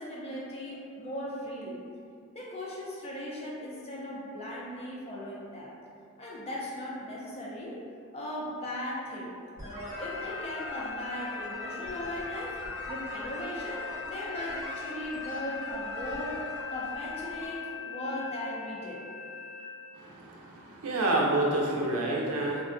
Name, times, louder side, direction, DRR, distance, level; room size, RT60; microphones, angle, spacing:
voice 1, 0.0-1.8 2.3-5.7 6.2-7.8 8.1-9.3 9.6-12.6 12.9-16.4 16.7-19.0, left 1 dB, 30° left, -5 dB, 0.5 m, -38 dB
sound 1, 9.6-17.5, equal, 15° right, 0.9 m, -43 dB
sound 2, 9.9-19.6, left 7 dB, 85° left, 0.5 m, -40 dB
voice 2, 19.9-22.6, right 2 dB, 85° right, -3 dB, 0.5 m, -28 dB
3.5 x 2.2 x 2.5 m, 2.4 s
head